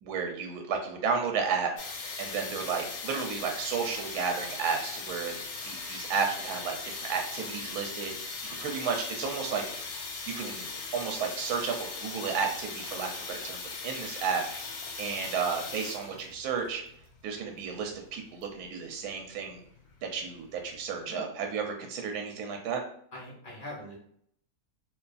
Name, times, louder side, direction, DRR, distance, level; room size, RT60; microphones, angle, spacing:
voice 1, 0.0-1.7 2.2-5.3 5.6-8.1 8.6-9.6 10.3-10.7 10.9-14.4 15.0-16.8 17.2-19.6 20.0-22.8, right 6 dB, 80° right, 3 dB, 1.1 m, -32 dB
sound 1, 1.8-21.0, left 4 dB, 80° left, 1.1 m, -40 dB
voice 2, 23.1-24.0, left 1 dB, 45° left, -3 dB, 0.7 m, -42 dB
2.7 x 2.3 x 2.4 m, 0.64 s
omnidirectional pair, 1.7 m